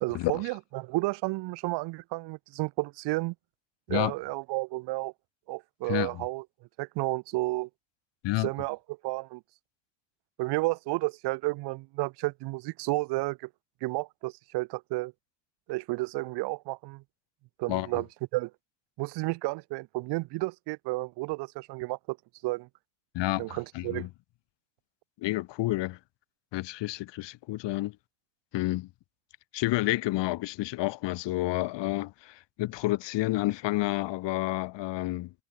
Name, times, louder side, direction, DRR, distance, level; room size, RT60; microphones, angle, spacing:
voice 1, 0.0-3.3 3.9-5.1 5.5-6.4 6.8-7.7 8.4-9.4 10.4-13.5 13.8-15.1 15.7-17.0 17.6-18.1 18.3-18.5 19.0-22.2 22.4-22.7 23.4-24.1, right 22 dB, 55° right, 0.8 m, -32 dB
voice 2, 5.9-6.2 8.2-8.5 17.7-18.0 23.1-24.1 25.2-26.0 26.5-28.0 28.5-28.9 29.5-35.3, left 18 dB, 60° left, 3.1 m, -30 dB
cardioid pair, 120°, 49 cm